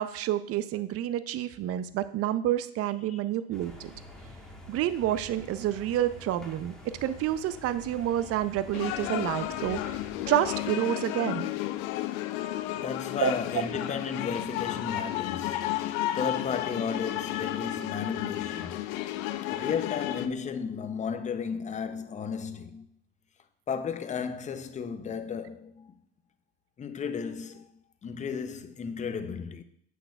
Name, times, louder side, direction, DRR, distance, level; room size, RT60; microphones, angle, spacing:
voice 1, 0.0-3.9 4.7-6.7 7.0-9.8 10.3-11.5 13.2-13.3, right 12 dB, 40° right, 0.5 m, -29 dB
sound 1, 3.5-10.7, left 1 dB, ahead, 1.2 m, -47 dB
sound 2, 8.7-20.3, left 14 dB, 80° left, 0.5 m, -32 dB
voice 2, 12.8-18.8 19.5-22.9 23.7-26.0 26.8-27.7 28.0-29.6, left 6 dB, 20° left, 0.5 m, -34 dB
7.8 x 6.3 x 2.3 m
supercardioid pair, 100°, 39 cm